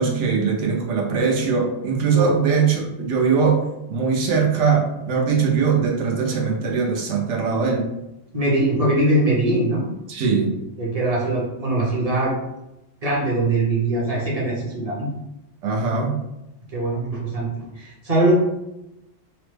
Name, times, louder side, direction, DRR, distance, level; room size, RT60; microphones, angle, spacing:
voice 1, 0.0-7.9 10.1-10.5 15.6-16.2, right 5 dB, 75° right, 0 dB, 1.0 m, -21 dB
voice 2, 8.3-9.9 10.8-12.3 13.0-15.1 16.7-18.3, right 2 dB, 35° right, -4 dB, 0.8 m, -22 dB
3.0 x 2.1 x 3.2 m, 0.90 s
omnidirectional pair, 1.3 m